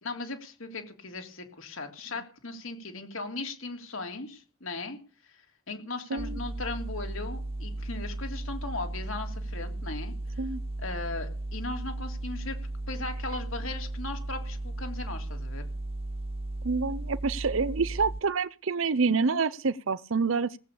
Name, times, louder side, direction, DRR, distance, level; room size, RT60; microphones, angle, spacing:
voice 1, 0.0-5.0 5.3-10.1 10.8-12.6 12.9-15.7, left 3 dB, 75° left, 3.3 m, -38 dB
sound 1, 6.2-18.2, right 2 dB, 30° right, 0.7 m, -35 dB
voice 2, 16.6-20.6, right 4 dB, 70° right, 0.7 m, -27 dB
18.0 x 8.7 x 6.9 m
head